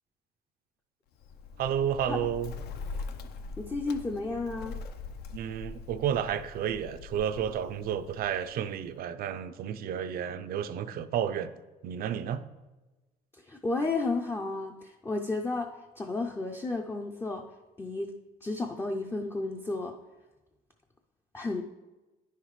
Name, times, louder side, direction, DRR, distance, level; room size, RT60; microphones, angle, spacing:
Bird, 1.1-8.9, left 4 dB, 70° left, 0.6 m, -42 dB
voice 1, 1.6-2.5 5.3-11.5 11.8-12.4, right 9 dB, 60° right, 0.5 m, -31 dB
voice 2, 3.6-4.8 13.3-17.5 17.8-18.2 18.4-20.0 21.3-21.6, left 3 dB, 15° left, 0.4 m, -32 dB
9.6 x 5.7 x 3.1 m
cardioid pair, 110°, 17 cm